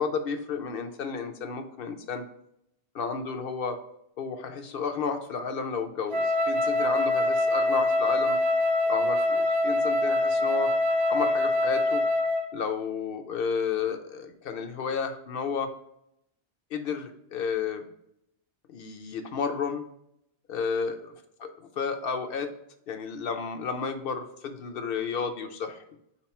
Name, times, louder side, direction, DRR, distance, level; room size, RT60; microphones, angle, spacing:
voice 1, 0.0-2.2 2.9-3.8 4.2-8.4 8.9-10.7 11.1-12.0 12.5-15.7 16.7-17.8 18.7-19.8 20.5-21.0 21.8-22.5 22.9-25.8, left 5 dB, 60° left, 7 dB, 0.7 m, -32 dB
Wind instrument woodwind instrument, 6.1-12.5, left 2 dB, 40° right, 0.8 m, -24 dB
3.8 x 3.0 x 4.2 m, 0.78 s
omnidirectional pair, 1.2 m